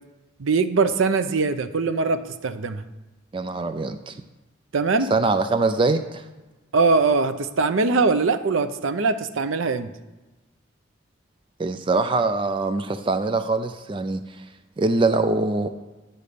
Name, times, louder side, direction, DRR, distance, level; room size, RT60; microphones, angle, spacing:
voice 1, 0.4-2.8 4.7-5.1 6.7-9.9, right 4 dB, 80° right, 11 dB, 0.5 m, -22 dB
voice 2, 3.3-4.2 5.1-6.2 11.6-14.4 14.8-15.7, right 3 dB, 25° right, 10 dB, 0.3 m, -23 dB
10.0 x 4.0 x 6.7 m, 1.1 s
head